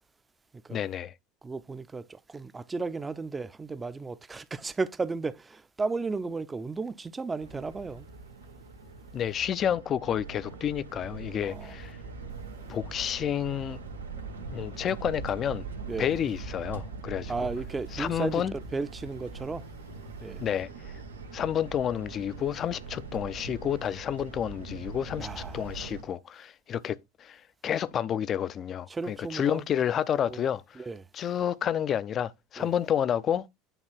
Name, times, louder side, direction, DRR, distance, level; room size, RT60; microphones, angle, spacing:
voice 1, 0.7-1.1 9.1-12.0 12.7-13.8 14.5-15.7 16.0-17.3 17.9-18.5 20.4-20.7 21.3-30.8 31.1-33.5, left 9 dB, 40° left, 0.6 m, -30 dB
voice 2, 1.4-8.1 11.4-11.7 15.9-16.1 17.3-18.4 18.7-19.6 20.2-20.4 25.2-25.7 28.9-29.6 30.1-30.5 30.8-31.0 32.6-32.7, right 4 dB, 20° right, 0.7 m, -34 dB
sound 1, 7.4-26.0, right 4 dB, 90° right, 1.6 m, -42 dB
9.1 x 3.2 x 6.3 m
hypercardioid pair, 75°, 0 cm